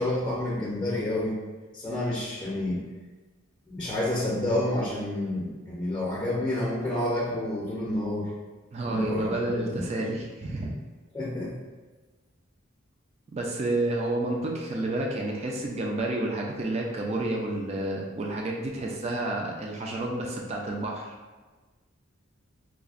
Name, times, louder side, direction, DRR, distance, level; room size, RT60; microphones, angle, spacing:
voice 1, 0.0-1.4 1.7-2.8 3.7-8.3 8.9-9.8 11.1-11.5, left 1 dB, 20° left, -7 dB, 0.5 m, -29 dB
voice 2, 8.7-10.7 13.3-21.1, right 2 dB, 30° right, 0 dB, 0.3 m, -30 dB
4.7 x 2.1 x 2.4 m, 1.3 s
head